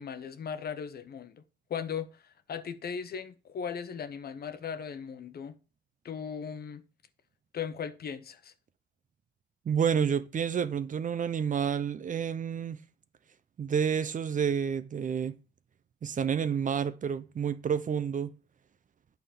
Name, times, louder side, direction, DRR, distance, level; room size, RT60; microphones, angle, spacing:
voice 1, 0.0-1.4 1.7-5.6 6.0-6.8 7.5-8.5, left 7 dB, 50° left, 1.0 m, -38 dB
voice 2, 9.7-12.8 13.6-15.4 16.0-18.3, right 7 dB, 40° right, 0.6 m, -29 dB
9.0 x 3.9 x 6.9 m
cardioid pair, 90°, 20 cm